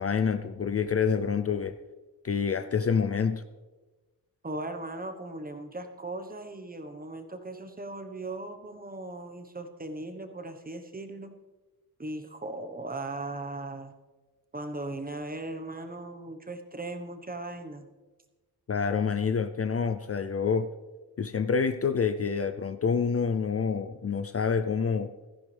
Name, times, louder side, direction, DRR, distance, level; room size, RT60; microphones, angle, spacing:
voice 1, 0.0-1.7 2.2-3.4 18.7-20.7 21.2-25.1, left 6 dB, 40° left, 10 dB, 0.5 m, -27 dB
voice 2, 4.4-11.3 12.0-13.9 14.5-17.9, right 2 dB, 25° right, 6 dB, 1.2 m, -38 dB
16.0 x 14.0 x 3.4 m, 1.2 s
wide cardioid pair, 130°, 37 cm